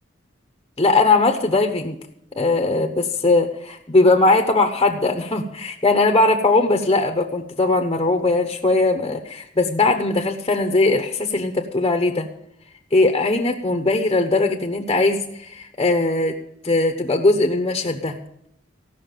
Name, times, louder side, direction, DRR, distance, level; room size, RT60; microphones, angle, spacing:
voice 1, 0.8-2.0 2.3-12.3 12.9-16.3 16.6-18.2, left 2 dB, 25° left, 4 dB, 1.0 m, -19 dB
15.5 x 6.1 x 9.1 m, 0.75 s
head